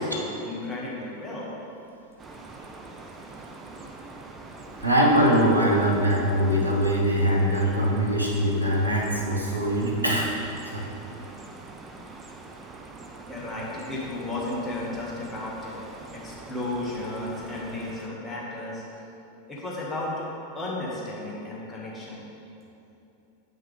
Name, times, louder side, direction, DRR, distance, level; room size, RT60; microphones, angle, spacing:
voice 1, 0.0-1.5 13.3-15.7 16.1-18.8 19.5-20.3 20.5-22.3, left 2 dB, 15° left, -5 dB, 1.8 m, -33 dB
sound 1, 2.2-18.1, right 3 dB, 15° right, 0.6 m, -43 dB
voice 2, 4.8-10.3 10.7-10.9, equal, 85° right, -3 dB, 1.1 m, -22 dB
9.1 x 5.7 x 3.5 m, 2.8 s
figure-of-eight pair, 90°, 0 cm